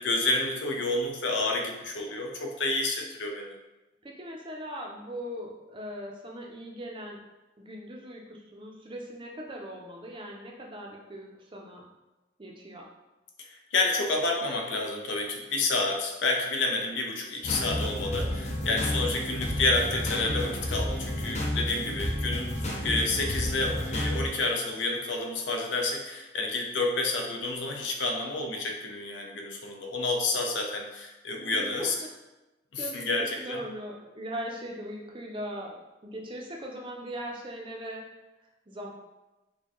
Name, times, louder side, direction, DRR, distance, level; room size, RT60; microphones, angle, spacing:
voice 1, 0.0-3.6 13.4-31.9 32.7-33.6, left 2 dB, 80° left, 1 dB, 0.6 m, -29 dB
voice 2, 4.0-7.2 7.6-11.9 12.4-12.9 18.5-19.0 31.5-32.1 32.8-35.8 36.0-38.1 38.7-38.9, equal, 25° right, -1 dB, 0.5 m, -40 dB
sound 1, 17.4-24.3, equal, 40° left, 0.5 m, -31 dB
4.3 x 2.2 x 2.9 m, 1.0 s
head